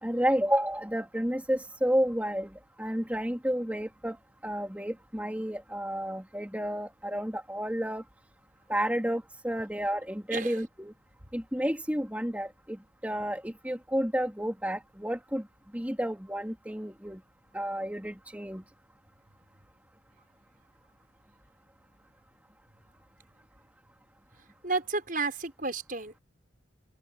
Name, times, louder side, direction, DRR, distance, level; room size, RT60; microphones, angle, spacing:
voice 1, 0.0-2.5 2.8-4.2 4.4-8.0 8.7-10.9 11.3-12.8 13.0-15.4 15.7-17.2 17.5-18.6, equal, 10° right, 3.5 m, -31 dB
voice 2, 24.6-26.2, right 3 dB, 45° right, 6.7 m, -32 dB
open air
head